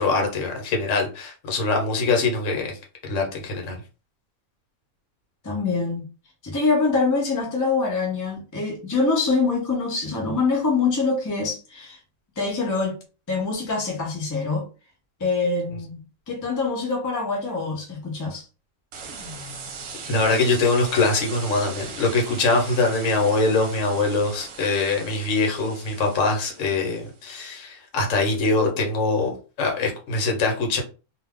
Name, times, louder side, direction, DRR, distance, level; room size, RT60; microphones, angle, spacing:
voice 1, 0.0-2.8 3.0-3.8 20.1-30.8, left 3 dB, 60° left, 1.2 m, -23 dB
voice 2, 5.4-6.0 6.4-12.0 12.4-13.0 13.3-14.7 15.2-16.0 16.3-18.5, left 4 dB, 30° left, 0.3 m, -24 dB
sound 1, 18.9-27.1, right 4 dB, 60° right, 0.9 m, -39 dB
2.5 x 2.3 x 3.5 m
omnidirectional pair, 1.6 m